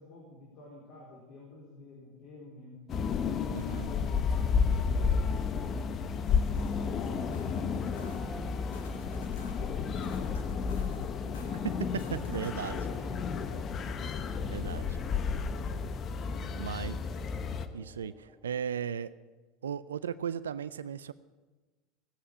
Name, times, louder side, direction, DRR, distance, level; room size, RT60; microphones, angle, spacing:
voice 1, 0.0-2.8 3.2-9.0 9.6-10.9 11.2-13.4 14.4-15.1 16.2-17.1, left 1 dB, 60° left, -4 dB, 4.5 m, -49 dB
sound 1, 2.9-17.7, left 6 dB, 40° left, 1.1 m, -32 dB
voice 2, 3.5-3.9 11.6-12.8 14.5-14.8 16.6-17.0 17.7-19.1 19.6-21.1, right 8 dB, 90° right, 15 dB, 0.4 m, -36 dB
sound 2, 6.4-12.7, left 3 dB, 85° left, 2.8 m, -56 dB
sound 3, 7.3-18.6, left 1 dB, 5° left, 2.0 m, -53 dB
17.5 x 8.6 x 8.9 m, 1.2 s
hypercardioid pair, 85°, 0 cm